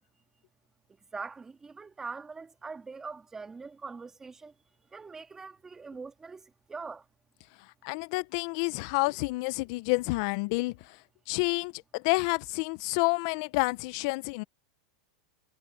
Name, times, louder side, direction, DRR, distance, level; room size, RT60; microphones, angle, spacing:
voice 1, 1.1-4.5 4.9-7.0, right 4 dB, 15° right, 2.1 m, -42 dB
voice 2, 7.8-10.7 11.3-14.4, left 26 dB, 55° left, 0.8 m, -29 dB
hypercardioid pair, 120°, 3 cm